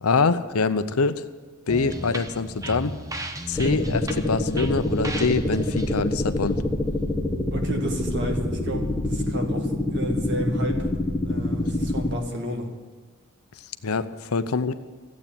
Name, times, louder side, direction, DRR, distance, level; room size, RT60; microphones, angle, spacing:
voice 1, 0.0-1.2 1.7-2.9 3.5-6.6 13.8-14.7, left 4 dB, 75° left, 11 dB, 0.7 m, -24 dB
sound 1, 1.7-7.3, right 1 dB, 15° right, 0.9 m, -35 dB
sound 2, 3.5-12.1, left 1 dB, 5° left, 1.6 m, -26 dB
voice 2, 7.5-10.9 11.2-12.7, equal, 50° right, 2 dB, 2.1 m, -31 dB
14.5 x 8.5 x 9.0 m, 1.4 s
head